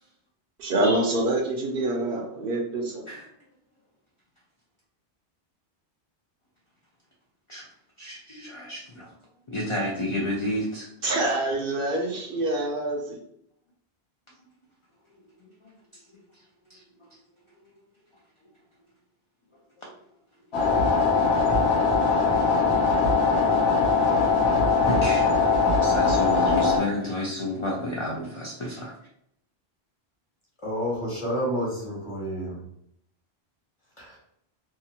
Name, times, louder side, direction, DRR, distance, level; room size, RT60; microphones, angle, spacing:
voice 1, 0.6-3.1 11.0-13.2, right 1 dB, 65° right, 1 dB, 0.7 m, -26 dB
voice 2, 8.0-9.1 9.5-10.9 15.6-15.7 16.7-16.8 19.8-19.9 24.8-25.3 25.8-29.0, left 1 dB, 50° left, -3 dB, 0.4 m, -30 dB
sound 1, 20.5-26.8, left 4 dB, 75° left, 1.0 m, -21 dB
voice 3, 30.6-32.6 34.0-34.2, equal, 30° left, -5 dB, 1.2 m, -29 dB
2.7 x 2.4 x 2.7 m, 0.74 s
omnidirectional pair, 1.1 m